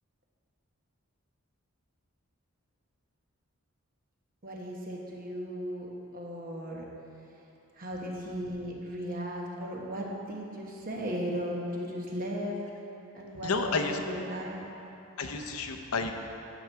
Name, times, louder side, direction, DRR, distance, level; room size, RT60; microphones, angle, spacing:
voice 1, 4.4-6.9 7.8-12.6 13.1-14.7, equal, 40° right, -1 dB, 1.1 m, -36 dB
voice 2, 13.4-14.0 15.2-16.1, left 4 dB, 90° left, 5 dB, 0.6 m, -30 dB
9.3 x 6.2 x 4.6 m, 2.9 s
head